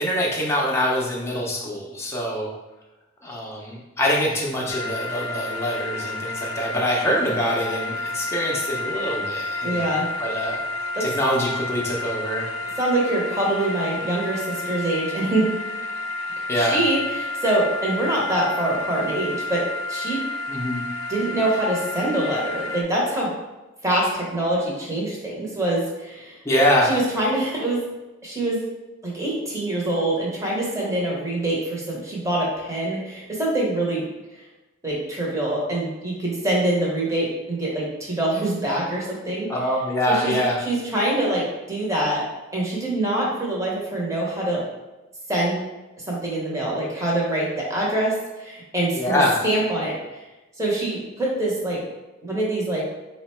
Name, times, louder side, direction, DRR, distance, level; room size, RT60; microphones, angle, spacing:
voice 1, 0.0-2.5 3.2-9.8 10.2-10.6 11.0-12.5 16.5-16.8 20.5-20.8 26.4-26.9 39.5-40.6 48.9-49.4, equal, 10° left, -4 dB, 0.6 m, -24 dB
sound 1, 4.7-22.8, left 2 dB, 75° left, 0.4 m, -30 dB
voice 2, 9.6-10.1 10.9-11.0 12.8-15.5 16.6-20.2 21.1-23.3 23.8-26.4 26.8-27.8 28.2-28.6 29.0-34.1 34.8-39.5 40.1-40.3 40.6-42.2 42.5-44.6 45.3-45.6 46.1-50.2 50.6-51.8 52.2-52.8, right 1 dB, 15° right, -4 dB, 0.8 m, -24 dB
3.9 x 2.1 x 4.3 m, 1.1 s
head